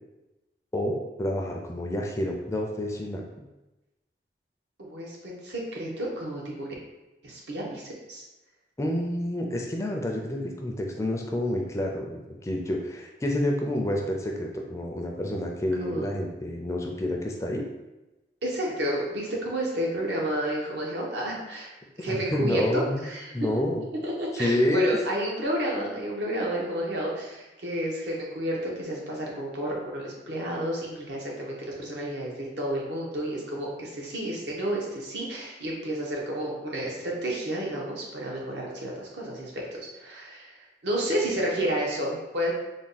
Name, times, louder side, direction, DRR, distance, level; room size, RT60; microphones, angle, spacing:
voice 1, 0.7-3.2 8.8-17.7 22.0-23.1 23.3-23.8 24.3-25.0, left 1 dB, 15° left, 1 dB, 0.3 m, -28 dB
voice 2, 4.8-6.7 7.2-8.2 15.8-16.0 18.4-21.7 22.0-23.5 24.0-40.6 40.8-42.5, right 1 dB, 75° right, -3 dB, 0.9 m, -31 dB
3.4 x 2.2 x 4.0 m, 1.0 s
head